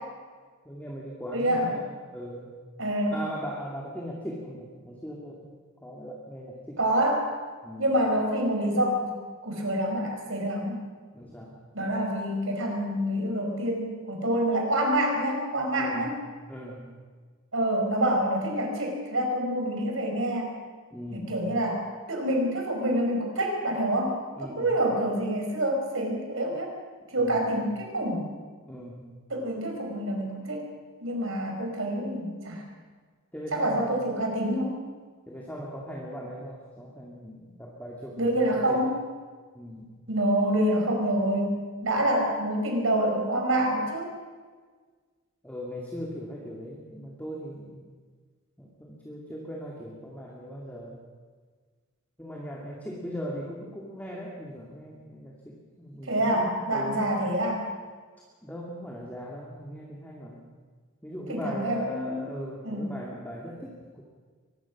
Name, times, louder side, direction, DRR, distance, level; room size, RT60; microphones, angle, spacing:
voice 1, 0.6-2.5 3.1-6.8 7.6-7.9 11.1-11.6 15.7-16.1 16.5-16.9 20.9-21.4 24.4-24.8 27.2-27.5 28.7-29.1 33.3-34.1 35.3-38.8 39.5-39.9 42.0-42.1 45.4-47.9 48.6-51.0 52.2-57.1 58.4-60.4 61.0-64.0, equal, 5° left, -3 dB, 2.7 m, -39 dB
voice 2, 1.3-1.7 2.8-3.2 6.8-7.3 7.8-10.8 11.7-16.1 17.5-20.5 21.1-26.7 27.1-28.3 29.3-30.6 31.0-32.6 33.5-34.8 38.2-39.0 40.1-44.1 56.0-57.6 61.3-62.3 62.6-63.0, right 1 dB, 60° right, 2 dB, 5.2 m, -27 dB
24.0 x 21.0 x 6.2 m, 1.5 s
head